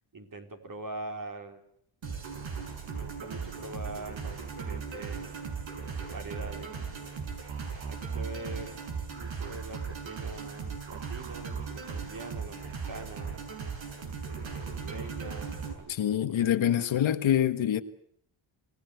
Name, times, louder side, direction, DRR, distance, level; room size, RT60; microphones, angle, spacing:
voice 1, 0.1-1.6 2.8-5.5 6.1-6.8 7.9-8.8 9.1-13.5 14.4-16.9, right 2 dB, 40° right, 4.3 m, -43 dB
sound 1, 2.0-15.7, right 5 dB, 70° right, 7.0 m, -37 dB
voice 2, 15.9-17.8, left 10 dB, 70° left, 1.6 m, -25 dB
28.0 x 17.5 x 8.2 m
cardioid pair, 95°, 48 cm